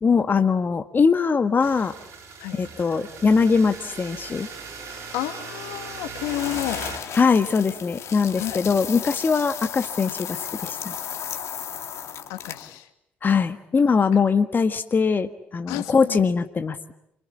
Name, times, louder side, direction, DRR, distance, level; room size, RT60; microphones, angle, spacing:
voice 1, 0.0-1.9 2.5-4.5 7.1-10.9 13.2-16.9, left 5 dB, 35° left, 8 dB, 1.5 m, -21 dB
sound 1, 1.6-7.0, right 5 dB, 60° right, 5.4 m, -39 dB
voice 2, 5.1-6.8 8.4-8.6 12.3-12.9 14.1-14.2 15.7-16.2, left 14 dB, 75° left, 8 dB, 2.3 m, -31 dB
sound 2, 6.2-12.8, left 9 dB, 60° left, 2.4 m, -34 dB
27.5 x 22.5 x 8.6 m, 0.79 s
hypercardioid pair, 55°, 5 cm